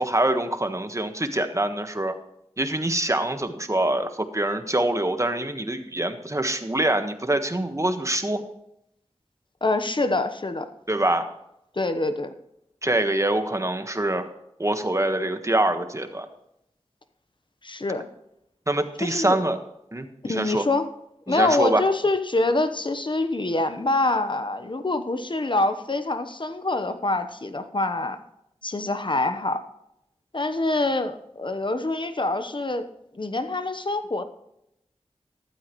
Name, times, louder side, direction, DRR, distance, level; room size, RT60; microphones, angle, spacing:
voice 1, 0.0-2.1 2.6-8.4 10.9-11.2 12.8-14.3 14.6-16.3 18.7-19.6 19.9-20.7 21.3-21.8, right 1 dB, 25° right, 7 dB, 1.4 m, -25 dB
voice 2, 9.6-10.7 11.7-12.3 17.6-18.1 19.0-19.4 20.3-20.9 21.3-28.2 28.6-29.6 30.3-32.9 33.1-34.2, left 2 dB, 45° left, 9 dB, 1.0 m, -25 dB
14.5 x 12.5 x 3.1 m, 0.79 s
wide cardioid pair, 50°, 11 cm